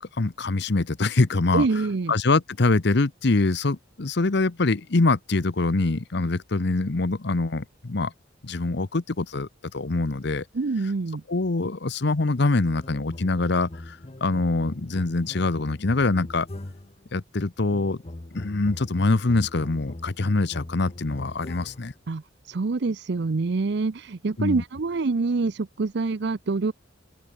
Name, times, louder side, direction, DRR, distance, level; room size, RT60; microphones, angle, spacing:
voice 1, 0.2-1.7 2.1-8.1 8.4-10.4 11.3-16.5 17.1-18.0 18.3-21.9 24.4-24.6, left 3 dB, 60° left, 0.9 m, -24 dB
voice 2, 1.5-2.1 10.5-11.2 22.1-26.7, right 3 dB, 60° right, 0.6 m, -26 dB
sound 1, 12.8-17.0 17.7-22.0, left 1 dB, 35° left, 1.0 m, -41 dB
open air
head